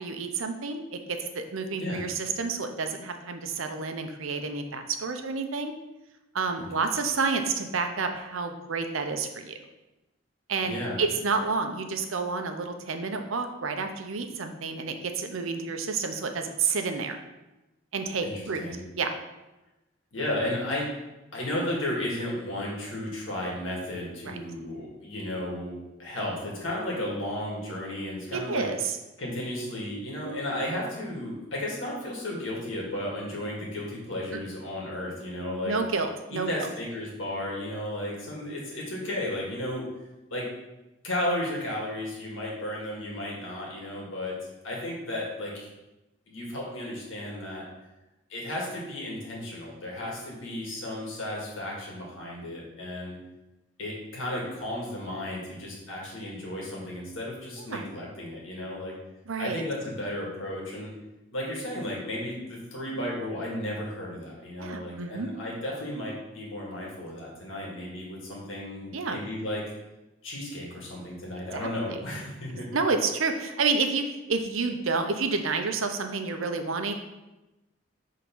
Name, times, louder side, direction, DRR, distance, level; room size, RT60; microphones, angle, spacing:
voice 1, 0.0-5.7 6.3-9.6 10.5-17.2 17.9-18.6 19.0-19.1 24.2-24.4 28.3-28.9 35.6-36.5 57.7-57.8 59.3-59.6 64.6-65.3 68.9-69.2 71.5-72.0 72.5-76.9, right 4 dB, 85° right, 6 dB, 0.7 m, -29 dB
voice 2, 10.6-11.0 18.2-18.8 20.1-20.9 21.3-25.7 26.0-28.7 29.2-35.8 36.3-39.9 40.3-40.5 41.0-44.4 44.6-45.7 46.3-47.6 48.3-53.2 53.8-59.0 59.4-60.9 61.3-69.6 70.2-72.7, left 1 dB, 75° left, -3 dB, 1.9 m, -34 dB
5.9 x 3.7 x 5.3 m, 1.0 s
head